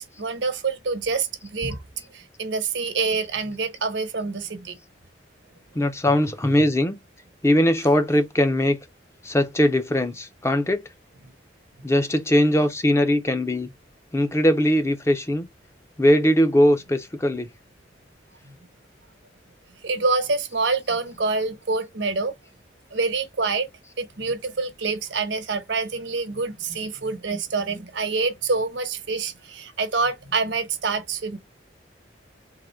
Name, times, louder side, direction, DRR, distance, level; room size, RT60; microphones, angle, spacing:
voice 1, 0.0-1.8 2.1-4.8 19.8-22.3 22.9-23.7 24.0-31.4, right 4 dB, 80° right, 1.0 m, -26 dB
voice 2, 5.7-7.0 7.4-8.8 9.2-10.9 11.8-13.7 14.1-15.5 16.0-17.5, left 1 dB, 15° left, 0.5 m, -20 dB
3.7 x 2.6 x 4.3 m
head